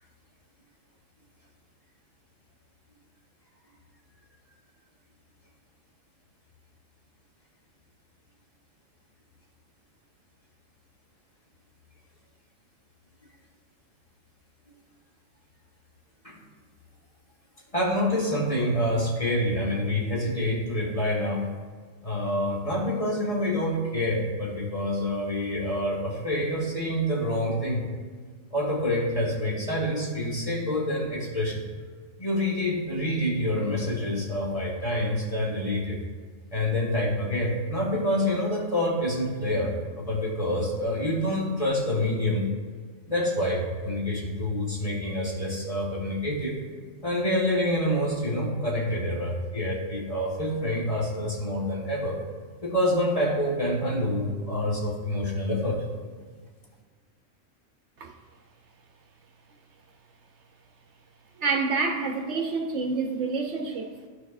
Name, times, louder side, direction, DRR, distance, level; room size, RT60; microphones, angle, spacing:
voice 1, 17.7-21.5 22.0-27.9 28.5-31.7 32.2-36.0 36.5-42.5 43.1-46.6 47.0-52.2 52.6-55.8, left 1 dB, 30° left, -4 dB, 1.3 m, -27 dB
voice 2, 61.4-63.9, right 4 dB, 65° right, 3 dB, 0.9 m, -27 dB
14.0 x 4.8 x 2.4 m, 1.5 s
omnidirectional pair, 1.3 m